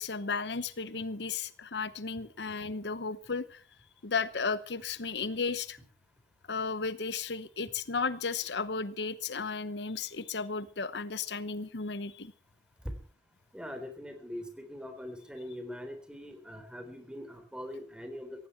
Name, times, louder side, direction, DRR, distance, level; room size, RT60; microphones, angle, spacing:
voice 1, 0.0-3.6 4.0-5.8 6.5-12.3, left 4 dB, 75° left, 15 dB, 0.9 m, -34 dB
voice 2, 13.5-18.5, equal, 5° right, 7 dB, 3.8 m, -42 dB
17.5 x 15.5 x 4.5 m, 0.44 s
head